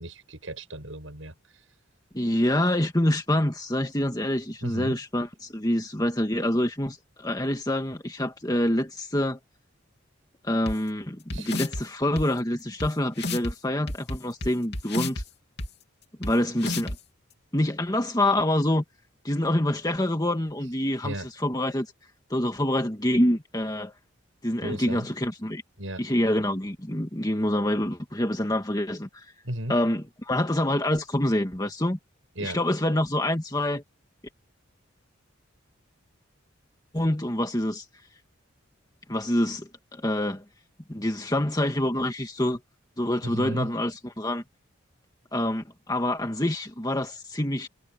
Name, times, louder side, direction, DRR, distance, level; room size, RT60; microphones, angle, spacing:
voice 1, 0.0-1.3 4.6-5.0 11.3-11.5 21.0-21.3 24.6-25.1 25.8-26.0 29.4-29.8 32.4-32.6 43.2-43.7, right 1 dB, 75° right, 7.8 m, -34 dB
voice 2, 2.1-9.4 10.4-15.2 16.2-17.0 17.5-18.8 19.2-21.9 22.3-23.9 24.4-25.6 26.0-29.3 29.7-32.0 32.4-33.8 36.9-37.9 39.1-40.4 40.9-42.6 43.0-44.4 45.3-47.7, left 1 dB, 20° left, 1.8 m, -26 dB
sound 1, 10.7-10.8 11.3-11.8 12.2-12.3 12.8-12.9 13.2-13.5 13.9-15.2 15.6-15.7 16.2-16.3 16.6-17.0, left 2 dB, 55° left, 3.3 m, -30 dB
head